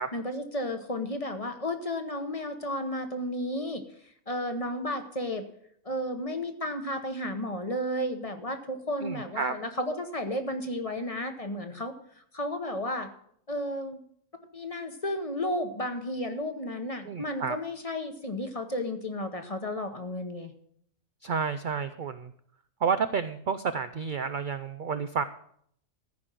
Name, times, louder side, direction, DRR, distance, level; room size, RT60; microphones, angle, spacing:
voice 1, 0.1-3.8 4.3-5.4 5.8-11.9 12.3-13.1 13.5-14.0 14.5-20.5, left 1 dB, 30° left, 6 dB, 0.9 m, -33 dB
voice 2, 9.0-9.5 17.0-17.6 21.2-22.3 22.8-25.2, right 6 dB, 65° right, 11 dB, 0.4 m, -30 dB
14.0 x 5.2 x 7.5 m, 0.66 s
omnidirectional pair, 1.4 m